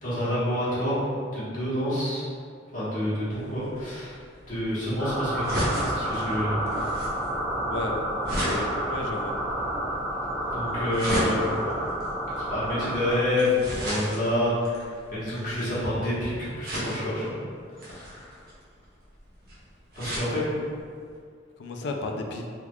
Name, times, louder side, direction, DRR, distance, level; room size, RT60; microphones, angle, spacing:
voice 1, 0.0-1.0 1.3-2.3 2.7-4.2 4.5-5.6 5.9-6.5 10.5-11.4 11.6-11.7 12.5-17.3 17.8-18.3 19.9-20.4 21.8-21.9, left 1 dB, 45° left, -11 dB, 1.3 m, -28 dB
sound 1, 3.3-15.9 16.6-17.3 17.8-20.3 20.8-20.9 21.1-21.2, equal, 55° right, 0.9 m, -34 dB
sound 2, 5.0-13.2, right 1 dB, ahead, 0.4 m, -30 dB
voice 2, 7.7-9.4 21.6-22.5, left 2 dB, 60° left, 3 dB, 0.3 m, -33 dB
3.5 x 3.0 x 2.3 m, 2.2 s
head